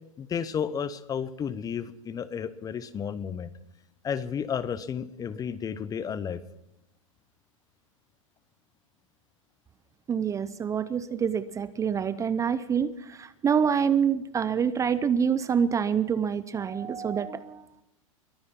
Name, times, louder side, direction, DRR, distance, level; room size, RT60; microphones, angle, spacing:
voice 1, 0.2-3.5 4.0-6.4, left 7 dB, 20° left, 17 dB, 0.8 m, -32 dB
voice 2, 10.1-17.8, right 7 dB, 20° right, 15 dB, 0.6 m, -26 dB
22.5 x 9.6 x 6.0 m, 0.84 s
hypercardioid pair, 110°, 17 cm